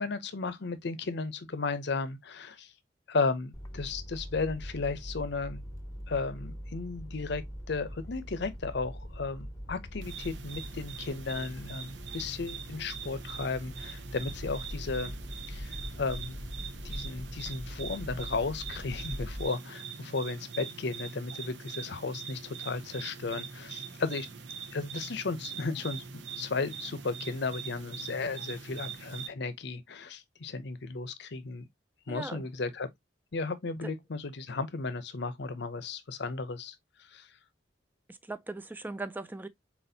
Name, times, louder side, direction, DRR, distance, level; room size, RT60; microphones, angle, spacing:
voice 1, 0.0-2.7 3.1-5.6 6.1-7.4 7.7-15.2 15.5-16.4 16.8-24.3 24.7-26.0 26.4-31.7 32.1-32.9 33.3-37.3, left 4 dB, 65° left, 0.7 m, -34 dB
sound 1, 3.5-19.4, equal, 20° left, 0.7 m, -42 dB
sound 2, 10.0-29.3, right 6 dB, 70° right, 0.8 m, -43 dB
voice 2, 32.1-32.5 33.8-33.9 38.1-39.5, right 2 dB, 10° right, 0.4 m, -39 dB
4.2 x 4.2 x 2.7 m
head